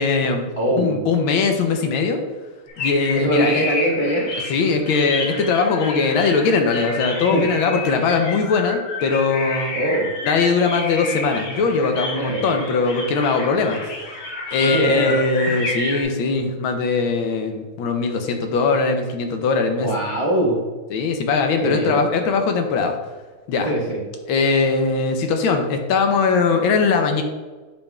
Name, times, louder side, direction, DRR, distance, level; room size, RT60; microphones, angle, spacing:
voice 1, 0.0-0.5 0.8-2.2 2.8-3.7 4.5-9.7 10.2-13.8 14.5-19.9 20.9-23.0 23.5-23.7 24.3-27.2, left 4 dB, 75° left, 5 dB, 1.5 m, -20 dB
voice 2, 0.6-1.0 3.1-4.3 7.3-7.5 9.7-10.1 12.1-12.5 14.6-15.2 19.8-20.6 21.6-22.0 23.6-24.0, right 1 dB, 45° right, -4 dB, 0.4 m, -22 dB
sound 1, 2.7-16.0, left 2 dB, 55° left, 1.9 m, -30 dB
8.6 x 5.5 x 2.3 m, 1.3 s
omnidirectional pair, 2.4 m